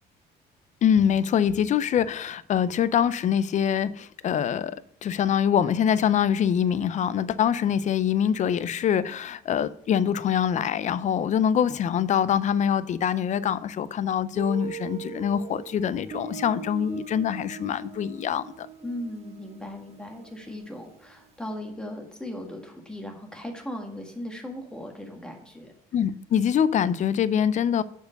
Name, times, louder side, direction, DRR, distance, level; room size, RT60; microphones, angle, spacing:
voice 1, 0.8-18.7 25.9-27.8, left 8 dB, 45° left, 0.5 m, -24 dB
Guitar, 14.4-21.0, right 7 dB, 40° right, 1.0 m, -41 dB
voice 2, 18.8-25.7, left 1 dB, 5° left, 1.7 m, -38 dB
6.9 x 4.7 x 6.4 m
cardioid pair, 110°, 17 cm